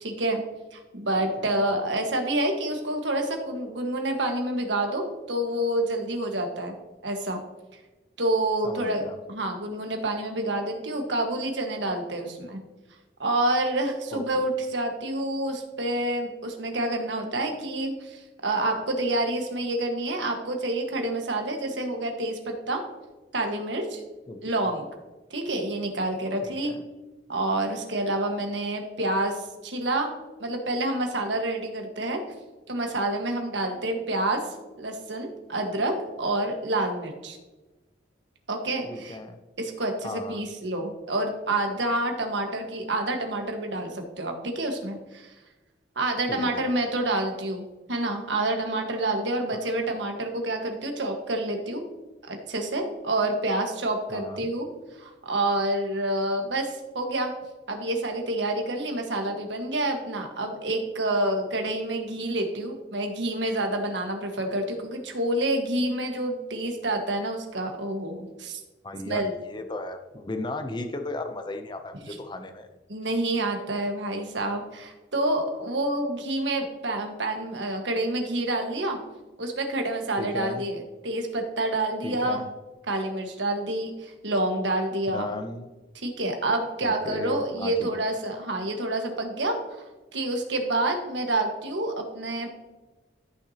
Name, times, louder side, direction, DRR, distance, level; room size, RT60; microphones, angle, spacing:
voice 1, 0.0-0.4 0.7-6.7 7.0-7.4 8.2-9.0 9.3-12.6 13.2-22.8 23.3-24.0 24.4-24.9 25.3-26.7 27.3-30.1 30.4-32.2 32.7-34.4 34.8-37.4 38.5-39.2 39.6-45.3 45.9-51.8 52.2-54.7 55.0-57.3 57.7-68.6 69.0-69.3 72.9-79.0 79.4-80.8 81.0-82.4 82.9-85.3 86.0-89.9 90.1-92.5, right 1 dB, 80° right, 3 dB, 1.5 m, -28 dB
voice 2, 1.2-1.6 8.6-9.2 14.1-14.5 24.3-24.4 26.4-26.8 38.8-39.4 40.0-40.5 46.3-46.6 49.5-49.6 54.1-54.5 68.8-72.7 80.2-80.6 82.0-82.5 85.1-85.7 86.8-88.1, left 2 dB, 25° left, 7 dB, 0.6 m, -36 dB
13.5 x 6.0 x 2.8 m, 1.2 s
head